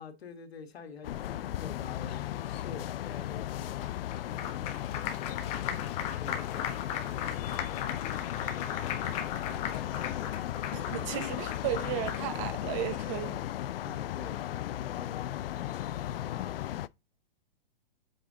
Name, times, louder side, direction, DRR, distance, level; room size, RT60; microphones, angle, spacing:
voice 1, 0.0-3.8 6.2-7.3 7.6-10.4 13.8-16.6, left 5 dB, 90° left, 1.7 m, -47 dB
sound 1, 1.0-16.9, left 13 dB, 70° left, 0.5 m, -36 dB
Applause, 3.8-12.5, left 9 dB, 20° left, 1.0 m, -38 dB
voice 2, 10.7-13.4, right 12 dB, 30° right, 0.9 m, -35 dB
7.7 x 3.7 x 4.1 m
hypercardioid pair, 155°, 30 cm